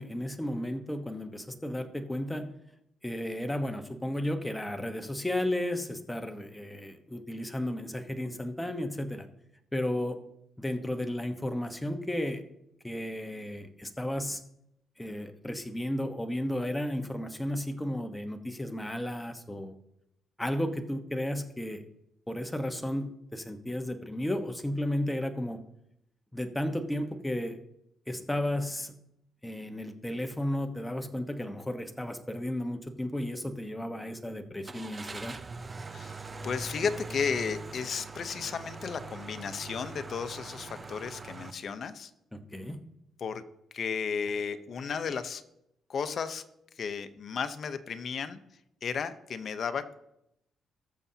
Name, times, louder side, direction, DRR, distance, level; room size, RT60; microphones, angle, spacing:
voice 1, 0.0-2.5 3.0-9.3 9.7-10.2 10.6-12.4 12.8-14.4 15.0-19.7 20.4-21.8 22.3-25.6 26.3-27.6 28.1-28.9 29.4-35.3 42.3-42.8, left 1 dB, 10° left, 6 dB, 1.2 m, -33 dB
Car / Engine starting, 34.6-41.5, right 3 dB, 30° right, 0.7 m, -42 dB
voice 2, 35.9-42.1 43.2-43.4 43.7-45.4 45.9-46.4 46.8-48.4 48.8-49.9, left 6 dB, 55° left, 10 dB, 0.8 m, -34 dB
19.5 x 7.0 x 2.9 m, 0.81 s
cardioid pair, 90°, 0 cm